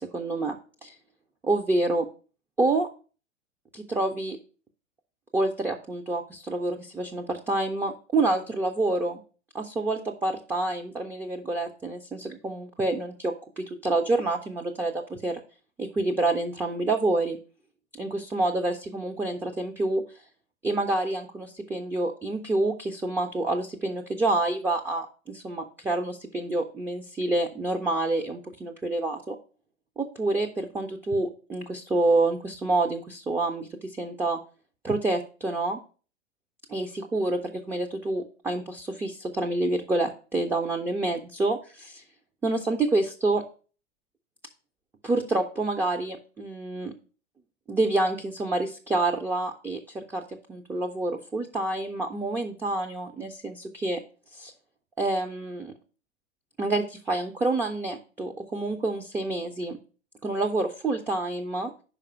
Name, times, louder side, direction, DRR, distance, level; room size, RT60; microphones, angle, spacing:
voice 1, 0.1-0.6 0.8-0.9 1.4-2.1 2.6-2.9 3.7-4.4 5.3-9.2 9.5-15.4 15.8-17.4 18.0-20.0 20.6-29.4 30.0-34.4 34.8-35.8 36.7-37.4 37.7-42.0 42.4-43.4 45.0-46.9 47.7-50.2 50.5-54.0 54.3-54.5 55.0-55.7 56.6-59.8 60.2-61.7, right 2 dB, 5° right, 3 dB, 0.3 m, -28 dB
5.2 x 5.0 x 6.1 m, 0.37 s
figure-of-eight pair, 95°, 36 cm